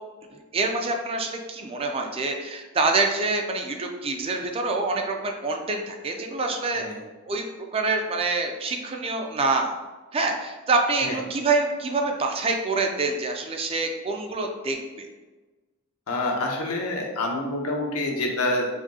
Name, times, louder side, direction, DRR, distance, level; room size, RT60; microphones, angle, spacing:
voice 1, 0.5-6.9 7.3-7.4 7.7-9.7 10.1-15.1, right 3 dB, 25° right, 3 dB, 0.3 m, -26 dB
voice 2, 16.1-18.7, left 2 dB, 80° left, 0 dB, 0.8 m, -27 dB
4.9 x 2.6 x 2.7 m, 1.2 s
head